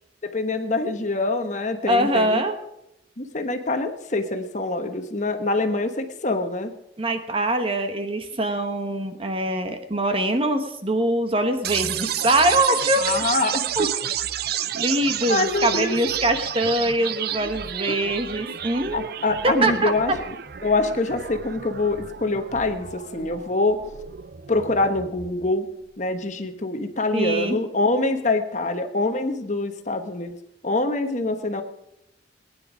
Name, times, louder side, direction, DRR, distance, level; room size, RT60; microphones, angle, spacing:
voice 1, 0.2-2.4 3.2-6.7 13.0-13.5 13.8-13.9 15.3-16.0 17.9-18.0 18.9-20.1 20.6-23.8 24.5-25.7 26.0-30.3 30.6-31.6, left 2 dB, 40° left, 7 dB, 1.1 m, -25 dB
voice 2, 1.9-2.5 7.0-13.1 13.8-13.9 14.7-19.1 19.4-19.9 27.1-27.6, right 1 dB, 30° right, 7 dB, 1.2 m, -23 dB
sound 1, 11.6-25.6, right 10 dB, 55° right, 0.5 m, -31 dB
20.0 x 10.0 x 5.0 m, 0.84 s
head